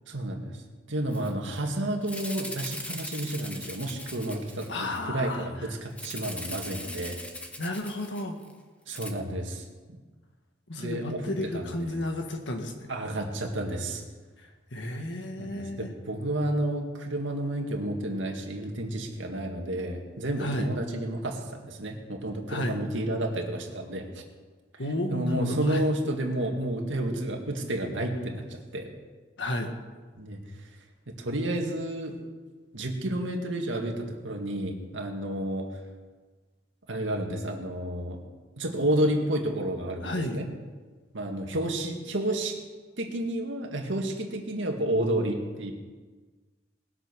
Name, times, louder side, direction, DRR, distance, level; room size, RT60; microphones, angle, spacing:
voice 1, 0.1-0.6 0.9-7.2 8.9-10.0 10.8-11.7 12.9-14.0 15.4-24.2 25.1-28.9 30.2-30.4 31.1-32.2 32.7-35.7 36.9-38.2 38.6-40.5 41.1-42.6 43.0-45.7, right 1 dB, 85° right, 2 dB, 2.1 m, -31 dB
Rattle (instrument), 1.1-1.3 1.6-1.7 2.0-5.0 6.0-8.5 8.9-9.1, left 1 dB, 5° left, 1.0 m, -40 dB
voice 2, 4.7-5.7 7.6-8.4 10.7-12.9 14.4-15.9 20.4-20.7 22.5-22.8 24.8-25.8 29.4-29.7 40.0-40.4, left 1 dB, 70° left, 4 dB, 1.7 m, -32 dB
19.5 x 8.2 x 6.3 m, 1.4 s
head